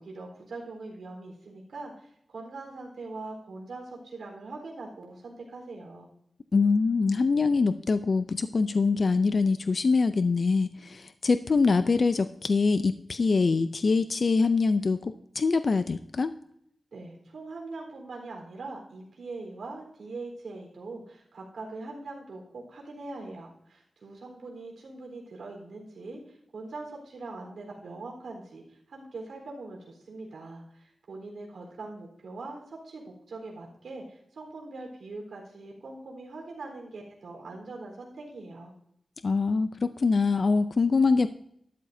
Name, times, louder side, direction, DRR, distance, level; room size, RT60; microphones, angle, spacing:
voice 1, 0.0-6.1 16.9-38.7, right 3 dB, 80° right, 0 dB, 3.9 m, -42 dB
voice 2, 6.5-16.3 39.2-41.3, left 4 dB, 45° left, 11 dB, 0.4 m, -24 dB
12.5 x 12.5 x 2.7 m, 0.72 s
wide cardioid pair, 145°, 0 cm